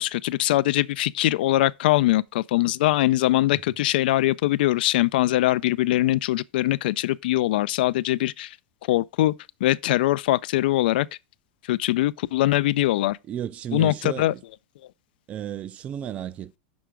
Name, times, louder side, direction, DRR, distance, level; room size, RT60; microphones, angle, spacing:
voice 1, 0.0-8.6 8.9-9.3 9.6-11.1 11.7-13.2 13.7-14.3, left 15 dB, 70° left, 0.4 m, -22 dB
voice 2, 13.3-14.4 15.3-16.6, right 10 dB, 25° right, 0.3 m, -33 dB
6.0 x 4.6 x 5.0 m
supercardioid pair, 155°, 5 cm